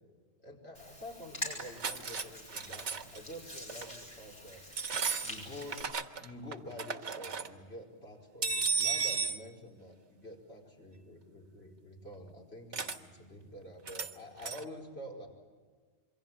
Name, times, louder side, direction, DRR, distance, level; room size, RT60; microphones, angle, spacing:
voice 1, 0.4-4.6 5.2-15.3, left 1 dB, 60° left, 1 dB, 5.5 m, -48 dB
Hands, 0.7-5.8, left 1 dB, 45° left, 6.9 m, -45 dB
sound 1, 1.5-2.3 2.5-3.2 3.7-3.9 4.7-6.3 6.5-7.5 8.4-9.4 12.7-13.0 13.9-14.1 14.4-14.6, right 5 dB, 85° right, 1.7 m, -34 dB
27.5 x 23.5 x 9.0 m, 1.5 s
omnidirectional pair, 1.2 m